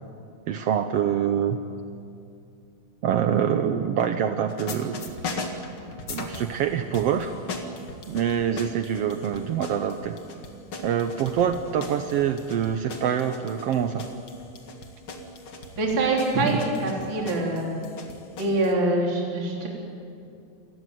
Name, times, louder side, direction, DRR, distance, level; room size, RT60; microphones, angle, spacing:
voice 1, 0.5-1.6 3.0-5.0 6.1-7.3 8.1-10.2 10.8-14.1, right 9 dB, 85° right, 8 dB, 1.3 m, -25 dB
sound 1, 4.5-6.6 6.9-18.7, left 3 dB, 45° left, 2.2 m, -38 dB
voice 2, 15.8-17.7 18.4-19.7, right 2 dB, 35° right, -2 dB, 4.0 m, -24 dB
28.5 x 16.5 x 9.4 m, 2.4 s
omnidirectional pair, 4.0 m